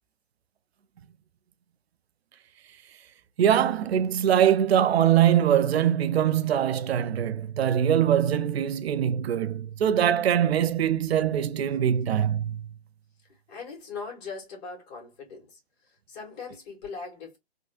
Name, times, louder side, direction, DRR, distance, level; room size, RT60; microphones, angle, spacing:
voice 1, 3.4-12.6, right 10 dB, 75° right, 0.5 m, -23 dB
voice 2, 13.5-15.6 16.1-17.4, left 4 dB, 40° left, 2.0 m, -40 dB
3.6 x 2.6 x 2.4 m
hypercardioid pair, 145°, 32 cm